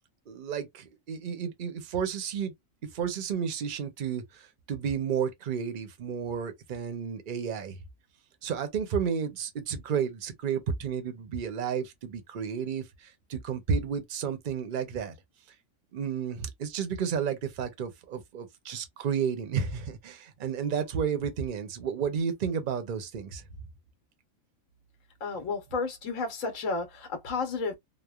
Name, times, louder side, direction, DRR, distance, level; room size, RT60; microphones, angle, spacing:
voice 1, 0.3-2.5 2.9-7.8 8.4-15.1 15.9-23.4, right 7 dB, 50° right, 0.7 m, -32 dB
voice 2, 25.2-27.8, left 4 dB, 75° left, 1.2 m, -32 dB
3.1 x 2.1 x 2.3 m
omnidirectional pair, 1.4 m